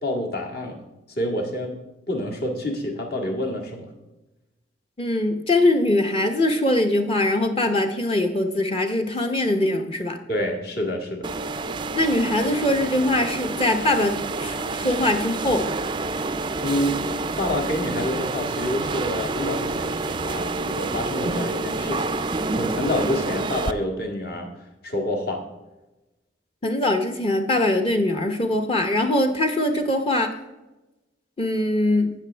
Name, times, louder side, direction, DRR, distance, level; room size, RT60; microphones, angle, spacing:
voice 1, 0.0-0.8 1.2-1.8 2.1-3.9 10.3-11.3 16.6-17.0 17.4-19.9 20.2-22.1 22.6-24.5 24.8-25.4, left 1 dB, 55° left, 1 dB, 1.8 m, -27 dB
voice 2, 5.0-10.2 11.9-15.7 26.6-30.3 31.4-32.1, left 1 dB, 30° left, 5 dB, 0.8 m, -22 dB
sound 1, 11.2-23.7, right 3 dB, 25° right, 0.4 m, -28 dB
17.0 x 6.2 x 3.4 m, 1.0 s
head